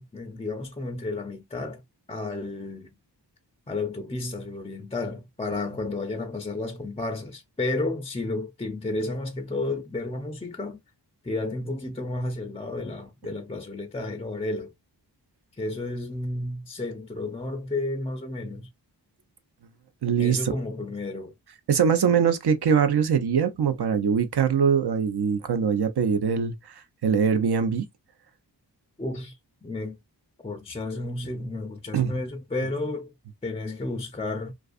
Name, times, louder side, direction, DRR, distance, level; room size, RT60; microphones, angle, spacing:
voice 1, 0.0-1.8 2.1-2.9 3.7-10.8 11.2-14.7 15.6-18.7 20.2-21.3 29.0-29.4 29.6-30.0 30.4-33.1 33.4-34.5, left 2 dB, 15° left, 0.4 m, -32 dB
voice 2, 20.0-20.5 21.7-26.7 27.0-27.9 31.9-32.1, right 7 dB, 65° right, 0.6 m, -22 dB
2.4 x 2.4 x 2.4 m
wide cardioid pair, 55°, 42 cm